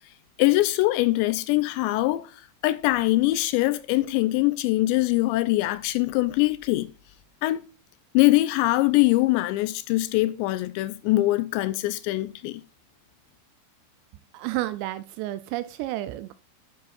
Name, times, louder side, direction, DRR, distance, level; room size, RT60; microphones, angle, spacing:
voice 1, 0.4-2.4 2.6-6.9 7.4-7.6 8.1-12.6, left 18 dB, 80° left, 2.7 m, -23 dB
voice 2, 14.3-16.3, right 16 dB, 80° right, 2.5 m, -31 dB
11.5 x 9.8 x 2.5 m
omnidirectional pair, 5.3 m